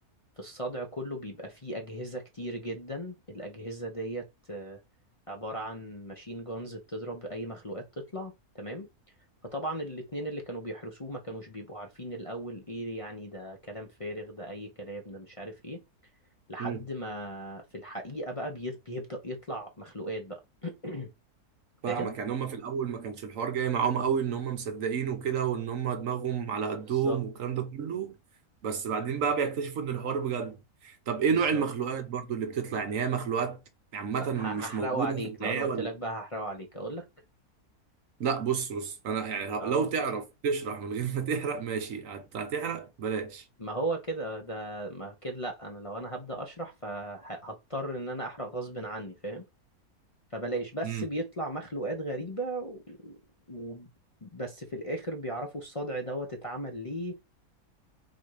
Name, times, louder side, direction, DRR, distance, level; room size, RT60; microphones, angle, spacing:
voice 1, 0.4-4.8 5.3-8.9 9.4-15.8 16.5-21.1 21.9-22.1 26.9-27.2 31.3-31.6 34.2-37.1 39.6-39.7 43.6-49.4 50.3-53.2 53.5-53.9 54.2-57.2, right 1 dB, 30° left, 0.7 m, -37 dB
voice 2, 21.8-28.2 28.6-30.6 30.8-33.6 33.9-35.9 38.2-43.4 50.8-51.1, right 6 dB, 65° right, 1.1 m, -30 dB
3.9 x 2.8 x 4.8 m
omnidirectional pair, 1.6 m